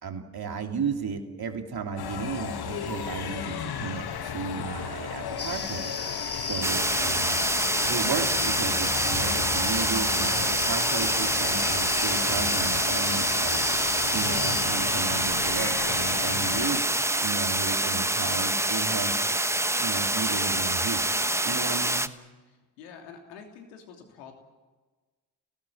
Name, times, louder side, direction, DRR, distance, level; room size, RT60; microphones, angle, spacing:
voice 1, 0.0-5.9 6.4-7.5 7.9-13.6 14.1-16.9 17.2-19.1 19.8-22.1, right 6 dB, 50° right, 4 dB, 3.0 m, -34 dB
sound 1, 2.0-16.8, left 8 dB, 50° left, 1.5 m, -35 dB
sound 2, 5.4-14.7, left 4 dB, 30° left, 2.7 m, -34 dB
sound 3, 6.6-22.1, right 1 dB, 5° right, 1.0 m, -26 dB
voice 2, 22.5-24.3, left 6 dB, 85° left, 3 dB, 3.0 m, -47 dB
28.0 x 18.5 x 7.3 m, 1.3 s
hypercardioid pair, 45°, 49 cm